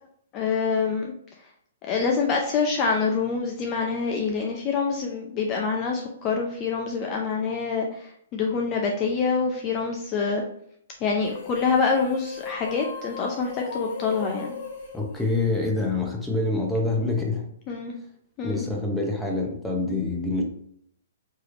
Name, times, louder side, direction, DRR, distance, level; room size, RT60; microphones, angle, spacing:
voice 1, 0.3-1.1 1.8-10.4 11.0-14.5 17.7-17.9 18.4-18.6, left 5 dB, 25° left, 1 dB, 0.5 m, -26 dB
sound 1, 11.2-15.9, left 4 dB, 45° left, 1.4 m, -37 dB
voice 2, 14.9-17.5 18.4-20.4, left 2 dB, 5° left, -1 dB, 0.8 m, -26 dB
4.6 x 3.3 x 2.5 m, 0.70 s
hypercardioid pair, 150°, 0 cm